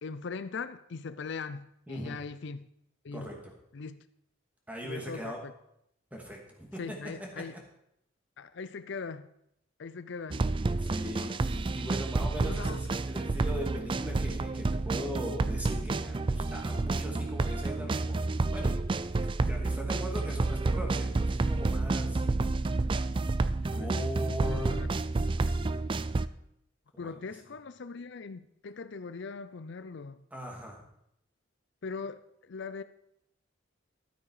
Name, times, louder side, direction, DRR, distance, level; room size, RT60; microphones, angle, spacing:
voice 1, 0.0-2.7 3.0-3.3 3.7-4.0 4.8-5.5 6.8-7.5 8.4-9.3 9.8-10.4 11.2-11.3 12.4-12.8 23.6-23.9 24.3-24.9 27.0-30.2 31.8-32.8, left 4 dB, 65° left, 13 dB, 0.5 m, -40 dB
voice 2, 1.9-2.2 3.1-3.5 4.7-5.4 6.1-7.4 10.8-18.2 18.5-18.8 19.2-22.2 23.3-24.9 26.9-27.2 30.3-30.9, right 1 dB, 10° right, 0 dB, 2.5 m, -40 dB
sound 1, 10.3-26.3, right 3 dB, 25° right, 0.3 m, -30 dB
13.0 x 8.7 x 4.9 m, 0.77 s
head